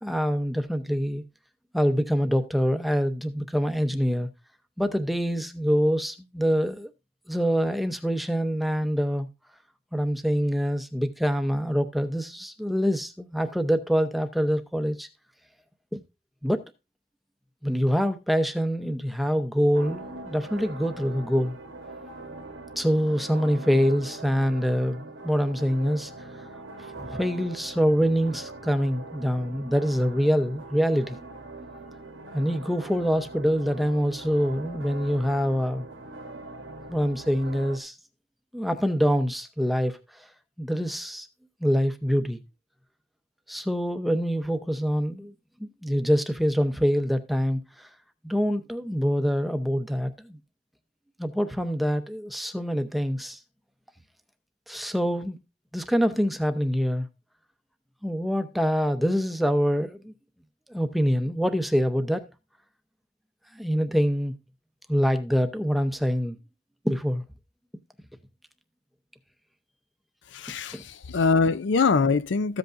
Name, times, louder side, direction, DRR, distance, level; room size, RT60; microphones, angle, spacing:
voice 1, 0.0-1.2 1.7-4.3 4.8-6.9 7.3-9.3 9.9-15.1 15.9-16.0 16.4-16.7 17.6-21.6 22.8-26.5 26.8-31.2 32.3-35.9 36.9-38.0 38.5-40.3 40.6-41.3 41.6-42.4 43.5-45.3 45.6-47.9 48.2-50.4 51.2-53.4 54.7-55.4 55.7-57.1 58.0-60.1 60.7-62.3 63.5-64.3 64.9-66.4 66.8-67.2 70.7-70.8, equal, ahead, 0.7 m, -25 dB
sound 1, 19.7-37.8, right 2 dB, 85° right, 1.5 m, -42 dB
voice 2, 70.3-72.6, left 4 dB, 70° left, 0.5 m, -23 dB
14.0 x 8.0 x 2.6 m
head